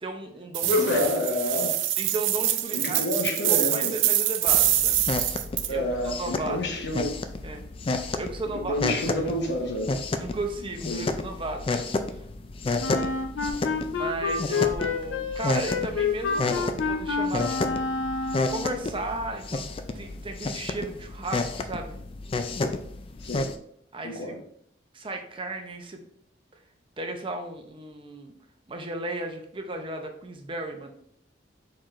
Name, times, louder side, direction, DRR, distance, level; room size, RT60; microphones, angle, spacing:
voice 1, 0.0-0.8 2.0-3.0 3.5-5.0 5.7-6.6 6.9-7.0 7.4-7.6 8.1-9.2 10.2-11.9 13.9-17.8 18.5-19.7 19.9-22.0 23.9-24.2 24.9-26.0 27.0-28.3 28.7-30.9, right 2 dB, 25° right, 0.6 m, -35 dB
sound 1, 0.5-5.7, right 12 dB, 85° right, 0.5 m, -25 dB
voice 2, 0.6-1.8 2.7-4.0 5.6-7.2 8.4-10.0 10.9-11.1 23.2-23.5 24.0-24.4, left 1 dB, 60° left, 1.0 m, -28 dB
sound 2, 4.4-23.5, left 3 dB, 30° left, 0.3 m, -31 dB
Wind instrument woodwind instrument, 12.8-18.8, left 4 dB, 85° left, 0.6 m, -28 dB
4.6 x 4.3 x 2.5 m
head